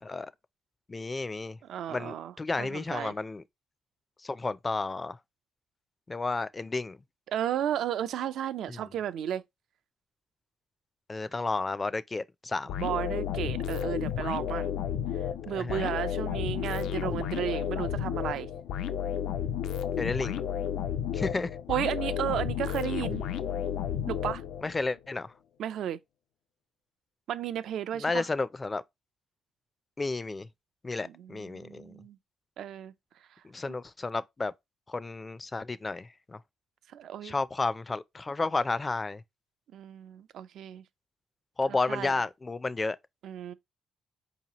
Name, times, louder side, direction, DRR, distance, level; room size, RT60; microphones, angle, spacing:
voice 1, 0.9-1.6 1.9-3.4 4.2-5.2 6.1-7.0 8.7-8.8 11.1-12.7 15.5-15.9 20.0-20.4 21.1-21.6 24.6-25.3 27.9-28.8 30.0-30.5 30.8-32.0 33.4-34.5 34.9-36.4 37.2-39.2 41.6-43.0, left 3 dB, 25° left, 0.4 m, -32 dB
voice 2, 1.7-2.3 2.6-3.1 7.3-9.4 12.8-14.7 15.5-18.5 21.7-23.2 24.1-24.4 25.6-26.0 27.3-28.3 31.0-32.2 32.6-32.9 36.9-37.4 39.7-40.8 41.9-42.2 43.2-43.5, right 10 dB, 75° right, 0.4 m, -33 dB
sound 1, 12.7-24.9, left 9 dB, 80° left, 0.4 m, -32 dB
4.7 x 2.9 x 2.9 m
cardioid pair, 90°, 0 cm